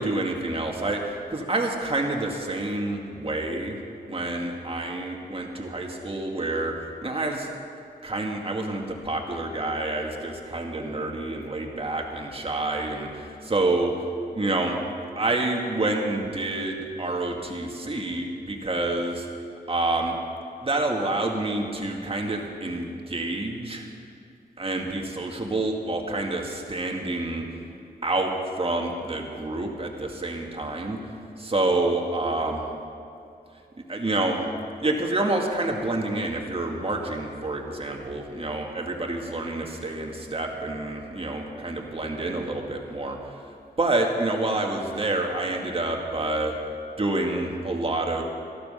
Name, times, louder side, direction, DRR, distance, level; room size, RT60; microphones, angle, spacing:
voice 1, 0.0-3.8 4.1-6.7 7.0-7.5 8.0-13.9 14.3-14.8 15.2-19.3 19.7-20.2 20.6-23.9 24.6-27.4 28.0-31.0 31.4-32.6 33.9-34.5 34.8-43.2 43.8-46.6 47.0-48.2, right 2 dB, 35° right, 1 dB, 2.0 m, -28 dB
13.5 x 12.5 x 5.7 m, 2.6 s
cardioid pair, 70°, 17 cm